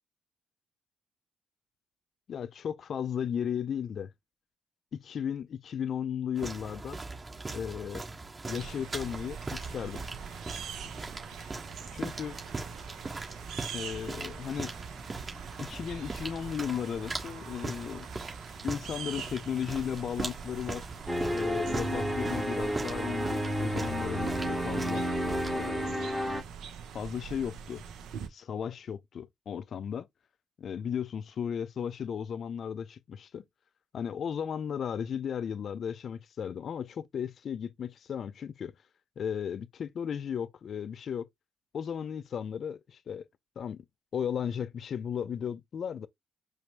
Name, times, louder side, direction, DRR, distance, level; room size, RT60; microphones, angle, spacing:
voice 1, 2.3-4.1 4.9-7.0 7.5-8.0 8.5-10.0 11.9-12.4 13.7-14.7 15.6-18.1 18.6-20.9 21.3-25.1 25.5-26.2 26.9-27.8 28.3-30.1 30.6-33.4 33.9-38.7 39.2-41.3 41.7-43.2 43.6-43.8 44.1-46.1, left 8 dB, 55° left, 0.4 m, -35 dB
sound 1, 6.4-25.7, right 3 dB, 30° right, 1.5 m, -40 dB
sound 2, 8.4-28.3, right 7 dB, 65° right, 0.5 m, -44 dB
sound 3, 21.1-26.4, equal, 15° right, 1.0 m, -31 dB
5.1 x 2.0 x 3.0 m
hypercardioid pair, 40°, 0 cm